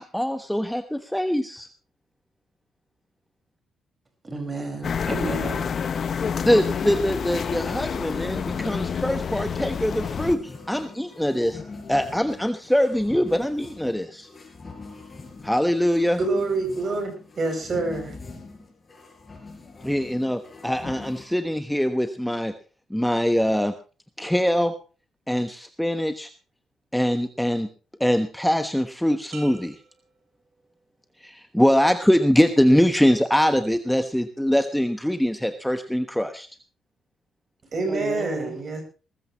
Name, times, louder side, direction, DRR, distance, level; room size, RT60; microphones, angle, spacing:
voice 1, 0.0-1.7 6.4-11.6 11.9-14.3 15.4-16.2 19.8-22.5 22.9-23.7 24.2-24.7 25.3-26.3 26.9-27.7 28.0-29.8 31.2-36.5, equal, 5° left, 1.2 m, -23 dB
voice 2, 4.2-5.8 37.9-38.6, right 2 dB, 25° right, 5.4 m, -32 dB
sound 1, 4.8-10.4, left 7 dB, 50° left, 0.8 m, -28 dB
sound 2, 8.0-21.3, left 3 dB, 25° left, 4.9 m, -42 dB
voice 3, 16.2-18.2 37.7-38.8, right 3 dB, 45° right, 6.9 m, -26 dB
sound 3, 29.3-31.1 31.6-32.1, right 5 dB, 70° right, 4.4 m, -48 dB
19.5 x 14.5 x 3.1 m
cardioid pair, 90°, 0 cm